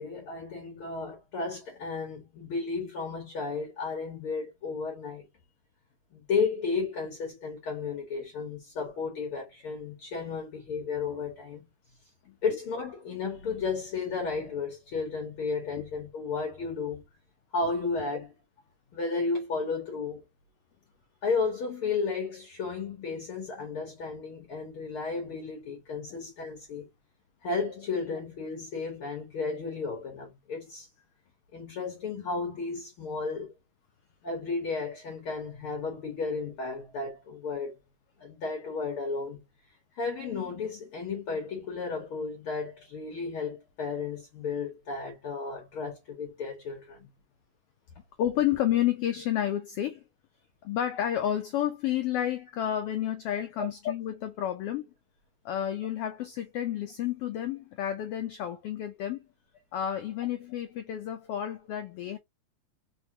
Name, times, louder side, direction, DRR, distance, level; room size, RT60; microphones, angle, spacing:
voice 1, 0.0-5.2 6.1-11.7 12.4-17.0 17.5-18.3 18.9-20.2 21.2-26.9 27.4-30.9 31.5-33.5 34.2-37.8 38.2-39.4 40.0-47.1 53.6-53.7, left 4 dB, 55° left, 1.8 m, -33 dB
voice 2, 48.2-50.0 50.6-54.9 55.4-59.2 59.7-62.2, left 11 dB, 90° left, 1.3 m, -30 dB
4.4 x 3.5 x 2.7 m
omnidirectional pair, 3.3 m